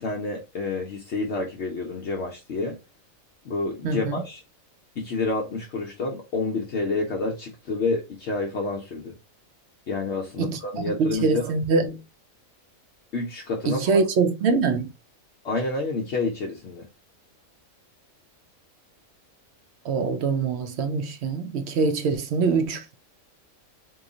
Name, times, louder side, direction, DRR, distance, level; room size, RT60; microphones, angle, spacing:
voice 1, 0.0-2.8 3.4-4.4 5.0-9.1 9.9-11.5 13.1-14.0 15.4-16.9, left 3 dB, 65° left, 0.9 m, -29 dB
voice 2, 3.8-4.2 10.4-10.6 11.0-12.0 13.6-14.9 19.8-22.9, right 4 dB, 65° right, 0.7 m, -24 dB
3.0 x 2.3 x 3.7 m
omnidirectional pair, 1.4 m